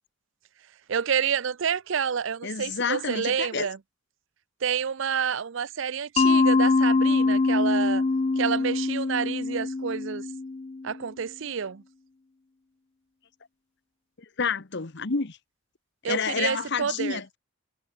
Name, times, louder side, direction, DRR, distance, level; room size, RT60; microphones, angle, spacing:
voice 1, 0.9-3.8 4.6-8.0 8.4-10.3 10.8-11.8 16.0-17.2, right 7 dB, 60° right, 0.5 m, -28 dB
voice 2, 2.4-3.7 14.4-15.4 16.1-17.4, left 5 dB, 50° left, 1.0 m, -29 dB
Mallet percussion, 6.2-10.9, left 3 dB, 30° left, 0.4 m, -23 dB
head